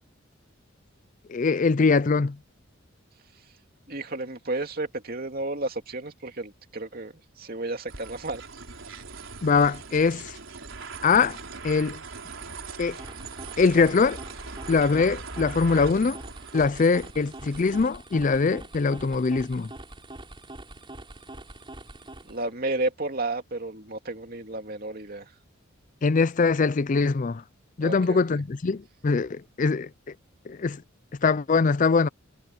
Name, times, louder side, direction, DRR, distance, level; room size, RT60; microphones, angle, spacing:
voice 1, 1.3-2.4 9.4-10.4 11.0-11.4 11.6-12.0 12.8-13.0 13.6-14.2 14.7-16.2 16.5-19.7 26.0-27.4 27.8-29.9 30.5-30.8 31.2-32.1, left 4 dB, 40° left, 0.4 m, -22 dB
voice 2, 3.9-8.4 22.3-25.2 27.8-28.2, right 2 dB, 45° right, 2.6 m, -32 dB
sound 1, 7.9-17.8, right 4 dB, 75° right, 4.0 m, -41 dB
sound 2, 12.6-22.5, right 1 dB, 25° right, 4.4 m, -44 dB
head